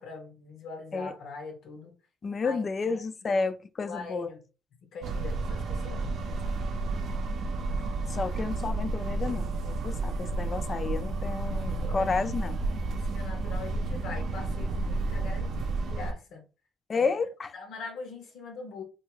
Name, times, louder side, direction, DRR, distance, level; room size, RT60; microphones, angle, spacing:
voice 1, 0.0-2.0 2.4-2.6 3.2-3.5 3.9-4.4 4.9-6.3 11.8-12.1 12.9-16.4 16.9-17.1 17.5-18.8, left 4 dB, 80° left, 0.8 m, -42 dB
voice 2, 2.2-4.3 8.1-12.6 16.9-17.5, left 4 dB, 40° left, 0.3 m, -31 dB
sound 1, 5.0-16.1, right 2 dB, 65° right, 0.4 m, -31 dB
2.7 x 2.3 x 3.0 m
cardioid pair, 90°, 0 cm